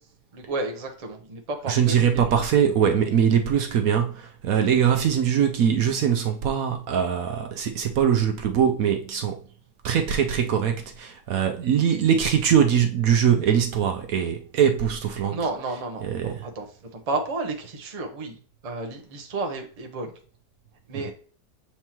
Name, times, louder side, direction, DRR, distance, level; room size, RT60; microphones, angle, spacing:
voice 1, 0.3-2.4 15.3-16.7 16.9-18.4 18.6-20.1 20.9-21.1, right 3 dB, 35° right, 0.7 m, -32 dB
voice 2, 1.7-9.4 9.8-15.4 16.0-16.5 20.9-21.1, right 8 dB, 65° right, 1.0 m, -22 dB
7.2 x 4.5 x 2.9 m
omnidirectional pair, 1.7 m